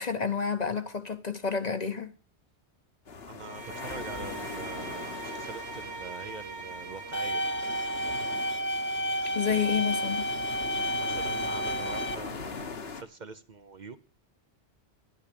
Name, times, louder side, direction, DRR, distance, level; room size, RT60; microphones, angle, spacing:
voice 1, 0.0-2.1 9.3-10.2, left 6 dB, 40° left, 1.0 m, -29 dB
sound 1, 3.1-13.0, left 4 dB, 65° left, 1.5 m, -41 dB
voice 2, 3.3-7.4 9.5-9.7 10.9-14.0, right 4 dB, 45° right, 0.9 m, -44 dB
Bowed string instrument, 3.4-8.6, right 4 dB, 75° right, 2.1 m, -42 dB
sound 2, 7.1-12.2, equal, 10° left, 0.9 m, -31 dB
12.0 x 10.5 x 6.9 m
omnidirectional pair, 1.1 m